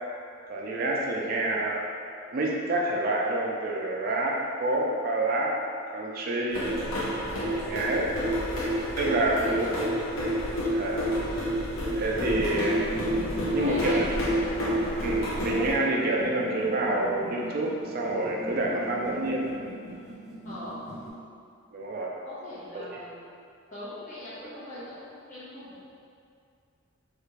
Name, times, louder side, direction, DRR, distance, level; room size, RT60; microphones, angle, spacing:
voice 1, 0.5-1.8 2.3-5.6 5.9-6.7 7.5-8.1 9.0-9.8 10.7-11.1 11.9-12.9 13.5-14.2 15.0-19.5 21.7-22.1 22.7-23.0, right 2 dB, 45° right, -2 dB, 0.3 m, -28 dB
voice 2, 1.2-1.6 9.1-9.8 13.4-14.3 20.4-20.8 22.2-23.2 23.7-26.0, left 1 dB, 40° left, -11 dB, 1.1 m, -42 dB
sound 1, 6.5-15.7, equal, 80° left, 0.6 m, -29 dB
sound 2, 12.1-21.1, equal, 20° left, 0.6 m, -40 dB
3.3 x 2.4 x 3.2 m, 2.4 s
head